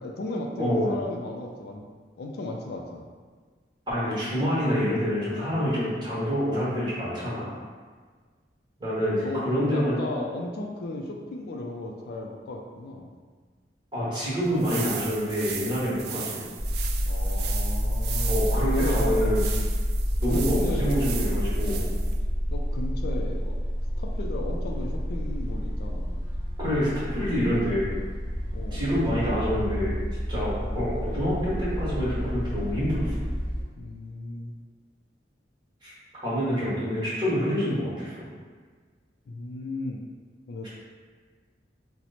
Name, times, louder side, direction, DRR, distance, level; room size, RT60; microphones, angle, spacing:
voice 1, 0.0-1.9 2.2-3.1 9.2-13.1 17.1-19.3 20.3-21.6 22.5-23.6 24.0-26.2 28.5-28.9 33.8-34.5 39.3-40.1 40.5-40.7, left 2 dB, 60° left, 1 dB, 0.3 m, -35 dB
voice 2, 0.6-0.9 3.9-7.5 8.8-10.0 13.9-16.5 18.3-19.4 20.2-21.8 26.6-28.0 28.7-30.0 30.3-33.2 35.8-35.9 36.2-38.3, equal, 25° right, -9 dB, 1.1 m, -27 dB
sound 1, 14.4-22.2, right 7 dB, 60° right, 0.3 m, -37 dB
sound 2, 16.6-33.6, equal, 30° left, 0.8 m, -29 dB
3.0 x 2.0 x 4.0 m, 1.5 s
head